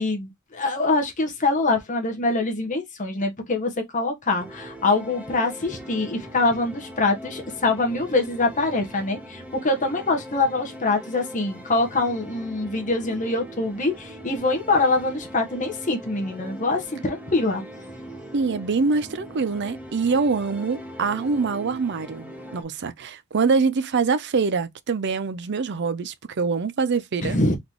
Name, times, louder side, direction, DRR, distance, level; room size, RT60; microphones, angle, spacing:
voice 1, 0.0-17.6 27.2-27.6, left 3 dB, 35° left, 1.2 m, -24 dB
sound 1, 4.4-22.6, equal, 5° right, 0.9 m, -41 dB
voice 2, 18.3-27.4, right 4 dB, 50° right, 0.5 m, -24 dB
3.9 x 3.7 x 3.0 m
head